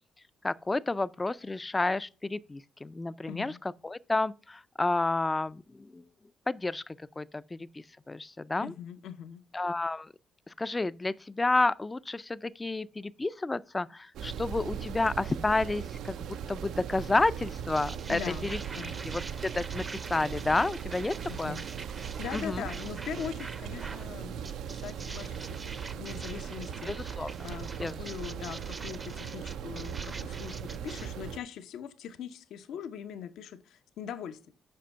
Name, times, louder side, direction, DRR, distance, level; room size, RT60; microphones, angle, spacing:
voice 1, 0.4-3.5 3.8-6.0 6.5-8.7 9.5-10.1 10.6-18.6 19.1-21.6 22.3-22.6 26.9-27.3 27.8-27.9, left 2 dB, 20° left, 0.4 m, -30 dB
voice 2, 3.3-3.6 8.6-9.4 18.1-18.9 21.3-21.6 22.2-34.5, left 8 dB, 80° left, 0.8 m, -41 dB
sound 1, 14.1-31.4, right 8 dB, 80° right, 0.4 m, -39 dB
sound 2, 17.7-24.1 24.4-31.1, right 3 dB, 25° right, 0.6 m, -45 dB
7.6 x 5.3 x 5.6 m
cardioid pair, 90°, 0 cm